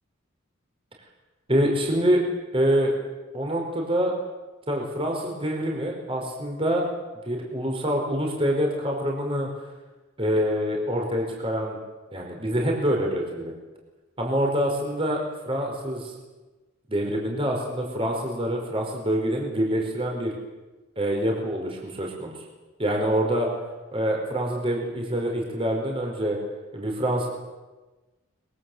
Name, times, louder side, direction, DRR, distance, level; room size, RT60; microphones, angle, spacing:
voice 1, 1.5-2.2 2.5-2.9 3.3-4.1 4.7-6.8 7.2-9.5 10.2-11.8 12.1-13.5 14.2-15.2 15.5-16.1 16.9-20.3 21.0-22.3 22.8-23.5 23.9-26.4 26.7-27.3, equal, 25° right, 0 dB, 4.8 m, -25 dB
24.0 x 22.5 x 8.0 m, 1.2 s
head